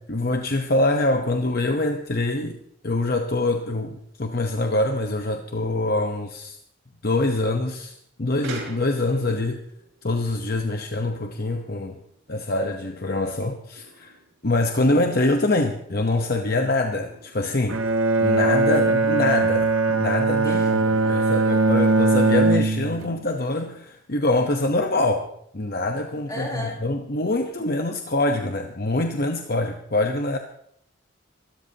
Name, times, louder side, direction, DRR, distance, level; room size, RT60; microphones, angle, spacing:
voice 1, 0.1-6.6 7.0-9.6 10.0-12.0 12.3-14.1 14.4-17.8 18.2-30.4, left 2 dB, 45° left, 4 dB, 1.0 m, -25 dB
sound 1, 8.4-11.3 11.5-13.0 13.8-15.1 15.7-15.8 16.7-17.9, right 2 dB, 90° right, 5.9 m, -43 dB
Bowed string instrument, 17.7-23.2, right 3 dB, 75° right, 0.9 m, -20 dB
voice 2, 20.4-21.4 26.3-26.8, left 1 dB, 20° left, -2 dB, 4.7 m, -36 dB
25.0 x 13.0 x 2.9 m, 0.70 s
head